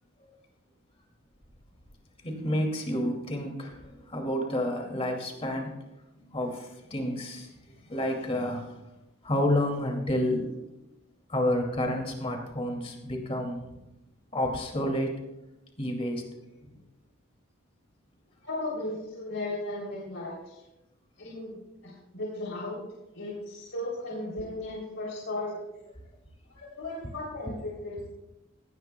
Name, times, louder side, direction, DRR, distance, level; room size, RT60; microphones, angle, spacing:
voice 1, 2.2-5.8 6.1-8.8 9.2-10.5 11.3-13.7 14.3-15.2 15.8-16.2 16.6-16.7 24.4-24.5, left 1 dB, 30° left, 2 dB, 2.4 m, -30 dB
voice 2, 18.4-20.6 21.2-22.8 23.1-25.6 26.5-28.1, left 2 dB, 75° left, -4 dB, 3.3 m, -36 dB
17.5 x 17.0 x 2.3 m, 0.96 s
head